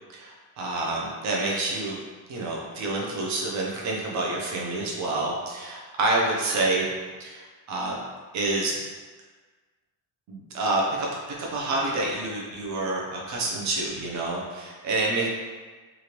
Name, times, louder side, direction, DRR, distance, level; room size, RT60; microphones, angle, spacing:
voice 1, 0.1-2.0 2.3-6.9 7.2-8.0 8.3-8.7 10.3-11.1 11.4-15.3, right 2 dB, 35° right, -3 dB, 0.5 m, -28 dB
3.1 x 2.5 x 2.9 m, 1.4 s
cardioid pair, 180°, 49 cm